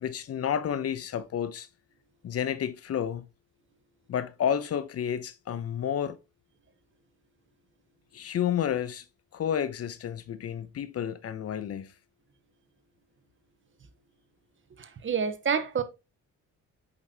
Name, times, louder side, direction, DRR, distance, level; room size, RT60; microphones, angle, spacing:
voice 1, 0.0-1.7 2.2-3.3 4.1-6.2 8.1-9.1 9.3-11.9, left 9 dB, 50° left, 0.8 m, -30 dB
voice 2, 14.8-15.8, right 6 dB, 40° right, 1.0 m, -28 dB
8.1 x 5.2 x 2.8 m
cardioid pair, 90°, 30 cm